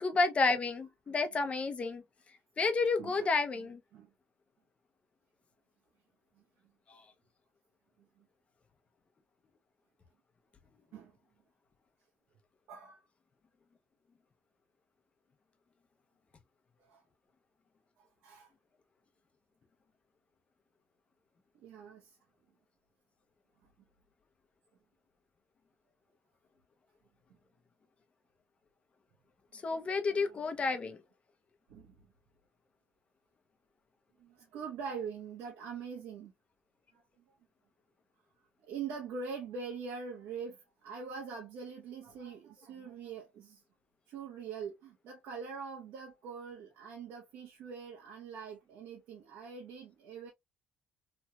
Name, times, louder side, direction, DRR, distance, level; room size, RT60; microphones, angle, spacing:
voice 1, 0.0-2.0 2.6-3.8 29.6-31.0, left 4 dB, 35° left, 0.7 m, -30 dB
voice 2, 3.0-3.6 3.9-4.1 8.2-8.3 10.9-11.1 12.7-13.0 16.8-17.0 18.2-18.5 21.5-22.2 29.5-29.6 30.1-30.5 31.7-32.1 34.2-36.3 36.9-37.0 38.6-43.6 44.1-50.3, right 5 dB, 85° right, 0.9 m, -43 dB
3.1 x 2.8 x 2.2 m
cardioid pair, 90°, 3 cm